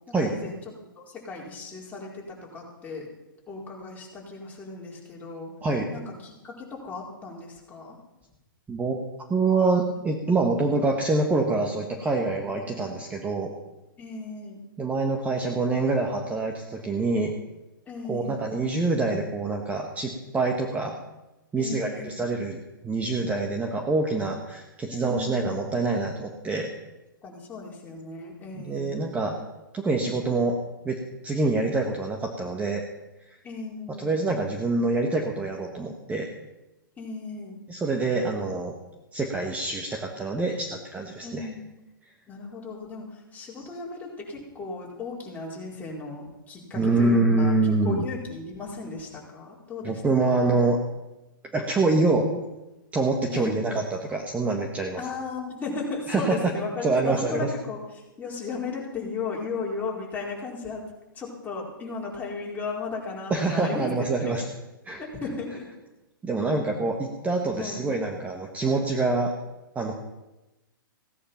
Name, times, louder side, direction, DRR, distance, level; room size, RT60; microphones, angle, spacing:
voice 1, 0.1-0.6 1.0-3.1 3.5-5.5 5.9-8.0 12.6-12.9 14.0-14.6 17.9-18.5 21.6-22.3 24.9-25.6 27.2-29.0 33.4-34.1 37.0-37.6 41.2-41.6 42.3-50.4 53.3-53.8 55.0-60.8 61.1-64.4 65.0-65.6 67.6-67.9, left 4 dB, 15° left, -3 dB, 4.5 m, -36 dB
voice 2, 8.7-9.0 9.3-13.5 14.8-17.3 18.1-21.0 21.5-26.7 28.5-29.4 29.7-30.6 30.8-32.8 33.3-33.4 34.0-36.3 37.7-38.7 39.1-41.5 43.6-43.7 46.8-48.0 49.8-50.8 51.5-52.3 52.9-55.0 56.1-56.4 56.8-57.5 63.3-64.5 64.8-65.0 66.2-69.3 69.7-70.0, right 3 dB, 10° right, 1 dB, 1.6 m, -25 dB
17.0 x 10.0 x 5.9 m, 1.0 s
hypercardioid pair, 120°, 12 cm